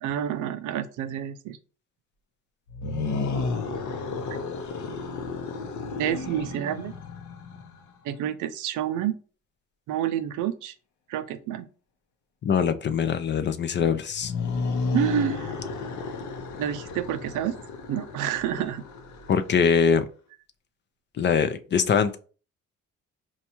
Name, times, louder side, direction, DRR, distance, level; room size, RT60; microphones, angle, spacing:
voice 1, 0.0-1.6 4.3-4.4 6.0-6.9 8.0-9.2 9.9-10.7 11.1-11.7 14.9-15.6 16.6-17.6 17.9-18.8, right 10 dB, 85° right, 0.5 m, -29 dB
sound 1, 2.7-7.9 14.1-19.8, left 4 dB, 70° left, 0.7 m, -32 dB
voice 2, 12.4-14.3 19.3-20.1 21.1-22.2, left 6 dB, 40° left, 0.4 m, -23 dB
4.2 x 2.3 x 2.9 m
cardioid pair, 90°, 30 cm